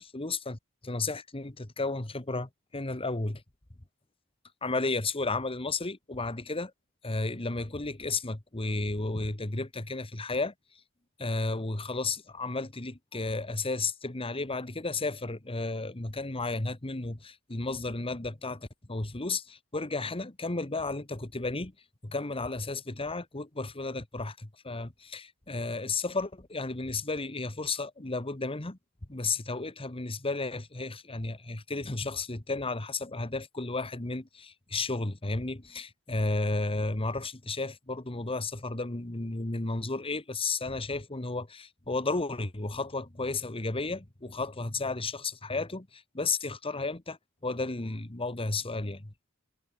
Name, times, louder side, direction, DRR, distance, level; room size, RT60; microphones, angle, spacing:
voice 1, 0.0-3.4 4.6-6.7 7.0-10.5 11.2-21.7 22.0-28.8 29.1-47.2 47.4-49.1, left 3 dB, 25° left, 1.5 m, -33 dB
head